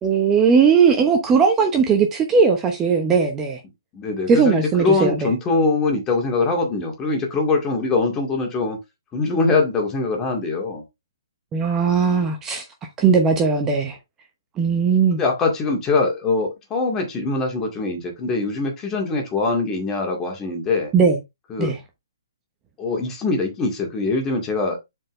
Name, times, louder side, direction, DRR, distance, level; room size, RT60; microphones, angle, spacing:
voice 1, 0.0-3.6 4.3-5.3 11.5-12.6 13.0-14.0 14.6-15.2 20.9-21.2 21.6-21.8, right 5 dB, 15° right, 0.9 m, -18 dB
voice 2, 3.9-8.8 9.1-10.8 15.1-20.9 21.5-21.7 22.8-24.8, left 3 dB, 20° left, 2.3 m, -23 dB
7.5 x 4.6 x 3.2 m
hypercardioid pair, 145°, 2 cm